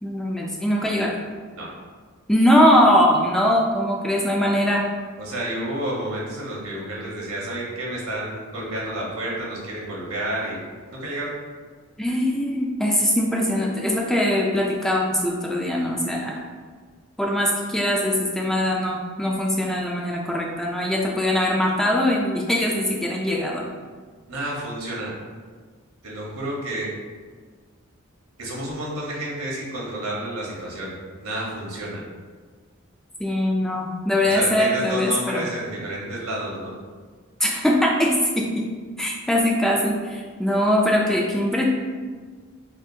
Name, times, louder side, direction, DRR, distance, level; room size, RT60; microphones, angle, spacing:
voice 1, 0.0-1.2 2.3-4.9 12.0-16.4 17.2-23.6 33.2-35.5 37.4-38.7 39.0-41.6, left 1 dB, ahead, -2 dB, 0.3 m, -21 dB
voice 2, 5.2-10.6 10.9-11.3 24.3-25.1 26.0-26.9 28.4-30.9 31.2-32.0 34.2-36.7, right 1 dB, 80° right, -4 dB, 1.3 m, -30 dB
6.0 x 2.4 x 2.7 m, 1.5 s
head